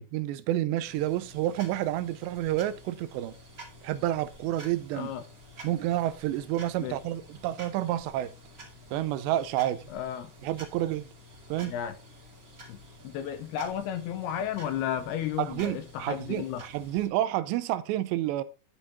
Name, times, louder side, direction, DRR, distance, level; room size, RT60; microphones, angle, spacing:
voice 1, 0.1-3.3 3.8-5.1 5.6-8.3 8.9-9.8 10.4-11.1 11.5-11.8 15.4-18.4, right 13 dB, 85° right, 2.8 m, -29 dB
sound 1, 0.8-17.1, equal, 30° right, 1.8 m, -50 dB
voice 2, 4.9-5.2 6.8-7.0 9.9-10.3 11.7-12.0 12.7-12.8 13.0-16.6, left 9 dB, 80° left, 2.5 m, -33 dB
13.0 x 5.5 x 4.1 m
omnidirectional pair, 5.1 m